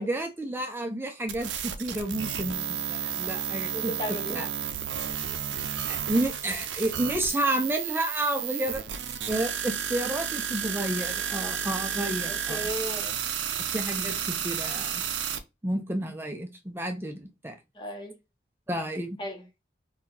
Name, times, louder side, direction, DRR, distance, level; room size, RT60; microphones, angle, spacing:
voice 1, 0.0-3.9 4.3-4.4 5.9-8.9 9.3-12.7 13.7-15.0 15.6-17.6 18.7-19.2, right 1 dB, 10° right, 0.4 m, -31 dB
sound 1, 1.3-15.4, right 8 dB, 80° right, 0.5 m, -32 dB
voice 2, 3.7-4.5 12.5-13.2 17.8-18.1 19.2-19.4, equal, 25° left, 0.8 m, -35 dB
2.7 x 2.3 x 3.8 m
head